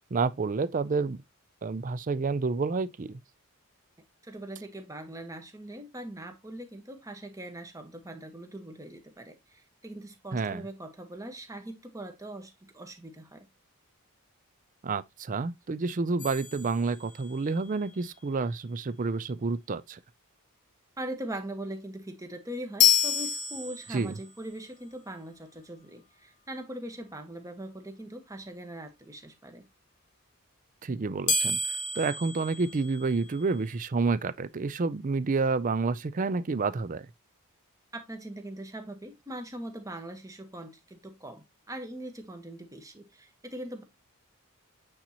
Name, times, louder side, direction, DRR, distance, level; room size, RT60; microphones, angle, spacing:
voice 1, 0.1-1.2 1.6-3.2 10.3-10.6 14.8-20.0 23.9-24.2 30.8-37.1, right 4 dB, 35° right, 0.4 m, -29 dB
voice 2, 4.2-13.5 21.0-29.7 37.9-43.8, right 1 dB, 15° right, 1.2 m, -41 dB
sound 1, 16.2-17.5 22.8-24.3 31.3-33.4, left 6 dB, 35° left, 0.7 m, -28 dB
8.8 x 4.1 x 2.9 m
head